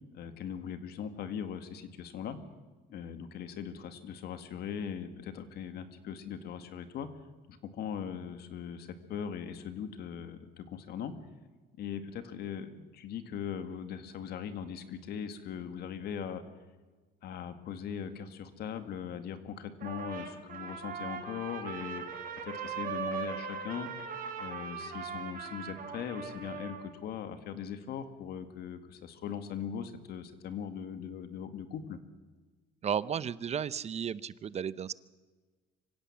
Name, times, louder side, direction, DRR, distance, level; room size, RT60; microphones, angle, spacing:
voice 1, 0.1-2.4 2.9-7.1 7.5-11.1 11.8-16.4 17.2-22.0 22.4-23.9 24.4-32.0, left 8 dB, 70° left, 10 dB, 2.0 m, -40 dB
Trumpet, 19.8-26.9, right 6 dB, 55° right, 4.5 m, -39 dB
voice 2, 32.8-34.9, right 8 dB, 40° right, 18 dB, 0.7 m, -33 dB
24.5 x 16.0 x 7.4 m, 1.3 s
cardioid pair, 110°, 17 cm